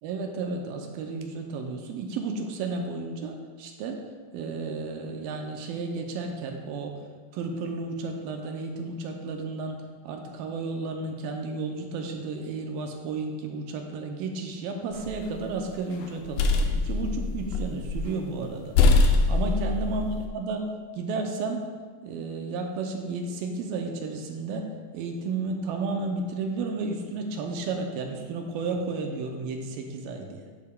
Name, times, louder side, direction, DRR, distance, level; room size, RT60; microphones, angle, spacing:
voice 1, 0.0-4.0 4.3-7.0 7.3-18.7 19.3-20.1 20.3-21.7 22.0-30.5, right 3 dB, 85° right, 3 dB, 2.4 m, -32 dB
sound 1, 14.9-15.5 16.0-18.1 18.4-18.5 18.8-20.3, left 3 dB, 75° left, 2.1 m, -23 dB
11.5 x 6.8 x 2.3 m, 1.5 s
omnidirectional pair, 4.1 m